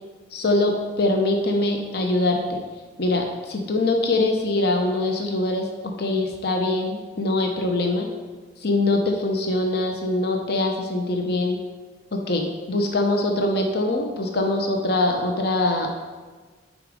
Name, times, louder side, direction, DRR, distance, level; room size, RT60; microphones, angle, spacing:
voice 1, 0.3-2.6 3.0-5.7 6.0-8.1 8.6-11.6 12.1-15.9, left 2 dB, 55° left, 2 dB, 0.8 m, -23 dB
6.4 x 5.0 x 5.1 m, 1.4 s
head